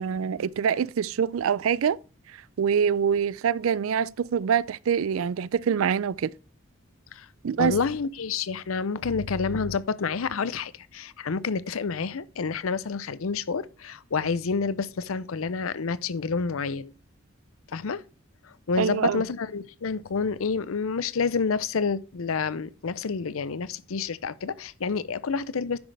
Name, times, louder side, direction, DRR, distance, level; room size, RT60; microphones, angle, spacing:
voice 1, 0.0-2.0 2.6-6.3 7.4-7.7 18.8-19.2, right 7 dB, 80° right, 0.4 m, -25 dB
voice 2, 7.6-16.9 17.7-18.0 18.4-25.8, left 5 dB, 80° left, 0.6 m, -29 dB
10.5 x 6.4 x 3.3 m
head